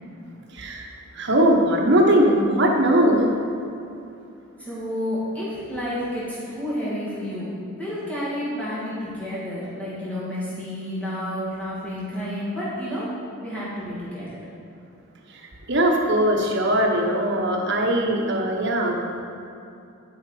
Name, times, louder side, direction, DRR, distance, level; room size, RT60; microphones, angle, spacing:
voice 1, 0.5-0.9 1.1-3.3 15.3-15.4 15.7-18.9, right 1 dB, 55° right, 1 dB, 1.2 m, -20 dB
voice 2, 4.6-7.5 7.8-13.1 13.4-14.4, equal, 5° left, -9 dB, 2.4 m, -30 dB
11.0 x 5.6 x 5.0 m, 2.7 s
head